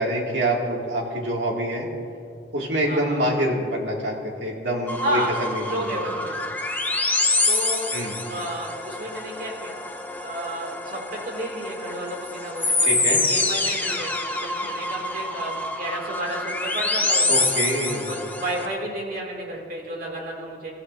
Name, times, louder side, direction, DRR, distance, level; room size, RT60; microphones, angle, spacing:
voice 1, 0.0-1.9 2.5-5.9 7.9-8.2 12.8-13.2 17.3-18.1, right 1 dB, 90° right, -2 dB, 2.6 m, -26 dB
voice 2, 2.9-3.2 5.0-5.3 5.7-6.4 7.5-7.9 8.3-9.8 10.2-17.5 18.0-20.7, right 1 dB, 55° right, -1 dB, 2.9 m, -32 dB
sound 1, 4.9-18.7, left 2 dB, 10° left, 1.0 m, -26 dB
23.5 x 14.5 x 2.8 m, 2.3 s
head